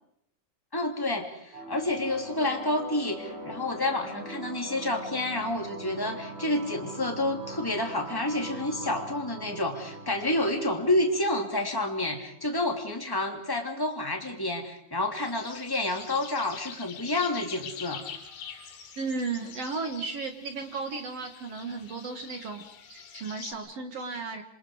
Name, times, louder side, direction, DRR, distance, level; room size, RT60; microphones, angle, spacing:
voice 1, 0.7-18.1, left 1 dB, 10° left, 2 dB, 1.7 m, -29 dB
sound 1, 1.5-12.5, right 1 dB, 30° right, 6.5 m, -42 dB
sound 2, 15.1-23.5, left 7 dB, 65° left, 4.3 m, -45 dB
voice 2, 19.0-22.6 22.9-24.4, right 4 dB, 55° right, 6 dB, 1.8 m, -34 dB
27.0 x 26.0 x 5.0 m, 0.72 s
omnidirectional pair, 5.1 m